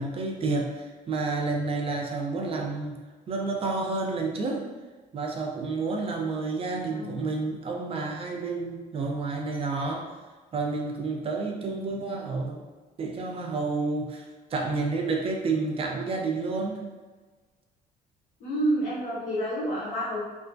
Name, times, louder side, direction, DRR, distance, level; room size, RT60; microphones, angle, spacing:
voice 1, 0.0-2.9 3.3-4.7 5.1-10.1 10.5-12.7 13.0-14.2 14.5-16.8, right 3 dB, 35° right, 1 dB, 0.5 m, -30 dB
voice 2, 18.4-20.2, right 1 dB, 75° left, -10 dB, 0.8 m, -29 dB
2.4 x 2.3 x 2.5 m, 1.3 s
cardioid pair, 110°, 17 cm